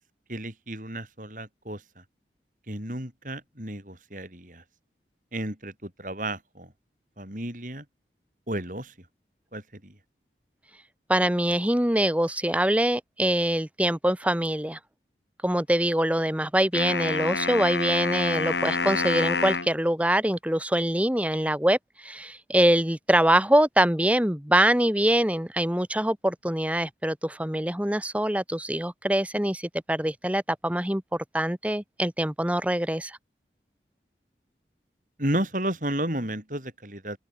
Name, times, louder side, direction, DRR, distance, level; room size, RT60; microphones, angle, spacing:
voice 1, 0.3-2.0 2.7-4.6 5.3-6.7 7.2-7.8 8.5-8.9 9.5-9.9 35.2-37.2, right 1 dB, 45° right, 7.5 m, -32 dB
voice 2, 11.1-14.8 15.4-33.2, right 1 dB, 10° right, 1.3 m, -24 dB
sound 1, 16.7-19.7, left 4 dB, 85° left, 7.0 m, -27 dB
open air
head